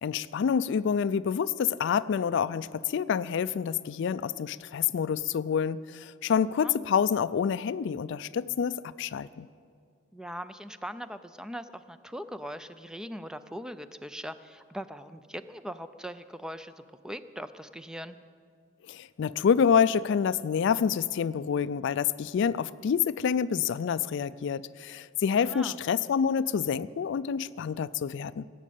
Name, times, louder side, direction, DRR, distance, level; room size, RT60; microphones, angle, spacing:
voice 1, 0.0-9.5 18.9-28.5, left 7 dB, 65° left, 17 dB, 0.3 m, -27 dB
voice 2, 10.1-18.2 25.4-25.8, equal, 5° right, 11 dB, 0.4 m, -40 dB
18.0 x 7.4 x 8.4 m, 2.2 s
head